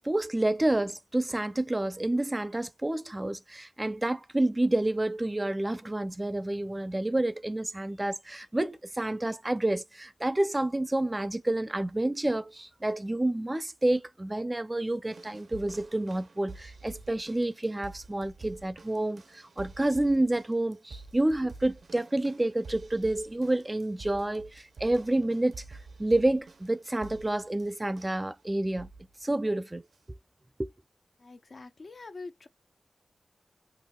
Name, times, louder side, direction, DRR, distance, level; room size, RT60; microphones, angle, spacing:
voice 1, 0.0-28.9 29.2-29.8 30.6-30.7, right 1 dB, 25° right, 0.4 m, -29 dB
sound 1, 15.1-28.3 28.8-29.1 29.9-30.0, right 3 dB, 75° right, 0.5 m, -49 dB
voice 2, 31.2-32.5, left 3 dB, 60° left, 0.5 m, -44 dB
5.3 x 2.0 x 2.2 m
cardioid pair, 60°, 0 cm